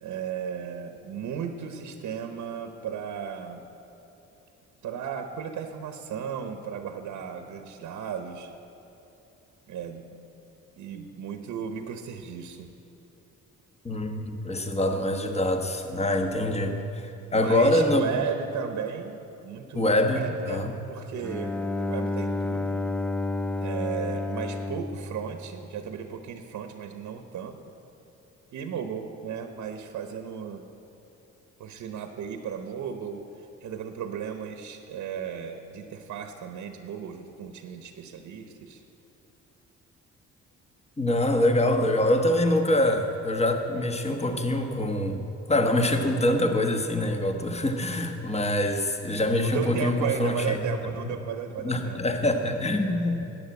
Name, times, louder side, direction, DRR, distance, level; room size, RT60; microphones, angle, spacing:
voice 1, 0.0-3.6 4.8-8.5 9.7-10.2 10.8-12.7 16.2-16.3 16.6-16.8 17.3-21.5 21.8-22.9 23.6-27.6 28.5-30.6 31.6-38.8 49.4-52.5 52.8-53.1, right 7 dB, 75° right, 6 dB, 1.0 m, -35 dB
voice 2, 13.8-16.8 17.3-18.2 19.7-20.7 41.0-50.6 51.6-53.3, left 1 dB, 20° left, 5 dB, 1.2 m, -24 dB
Bowed string instrument, 21.2-26.1, left 2 dB, 5° left, 0.3 m, -31 dB
12.0 x 8.7 x 8.4 m, 2.9 s
cardioid pair, 90°, 30 cm